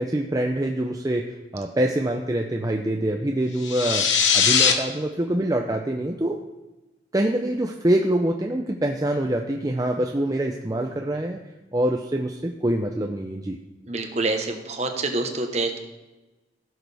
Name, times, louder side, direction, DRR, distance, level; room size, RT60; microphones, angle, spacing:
voice 1, 0.0-4.1 4.3-6.4 7.1-11.4 11.7-13.6, right 1 dB, 20° right, 2 dB, 0.5 m, -25 dB
sound 1, 3.6-4.7, left 6 dB, 80° left, 1.0 m, -20 dB
voice 2, 13.9-15.8, right 2 dB, 35° right, 4 dB, 1.1 m, -26 dB
16.0 x 6.5 x 3.4 m, 1.1 s
head